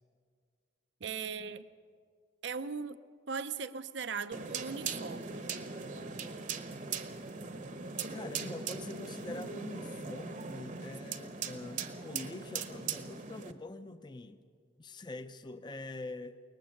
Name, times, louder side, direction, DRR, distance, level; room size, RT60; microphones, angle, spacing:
voice 1, 1.0-1.7 2.4-3.0 3.3-5.5 10.9-11.1, right 5 dB, 65° right, 13 dB, 0.6 m, -39 dB
sound 1, 4.3-13.5, right 5 dB, 40° right, 1.0 m, -40 dB
voice 2, 8.1-14.5 14.8-16.4, left 2 dB, 25° left, 10 dB, 0.5 m, -44 dB
22.0 x 19.5 x 6.5 m, 2.1 s
head